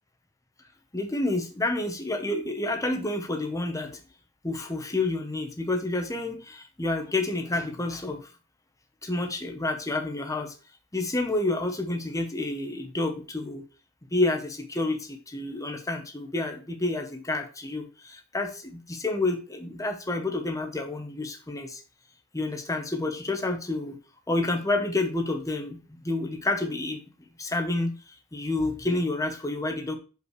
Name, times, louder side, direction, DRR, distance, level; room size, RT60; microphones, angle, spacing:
voice 1, 0.9-4.0 4.4-8.2 9.0-10.5 10.9-13.6 14.1-21.8 22.3-24.0 24.3-27.1 27.4-27.9 28.3-30.0, left 2 dB, 15° left, 5 dB, 1.0 m, -29 dB
6.5 x 5.4 x 3.2 m, 0.35 s
head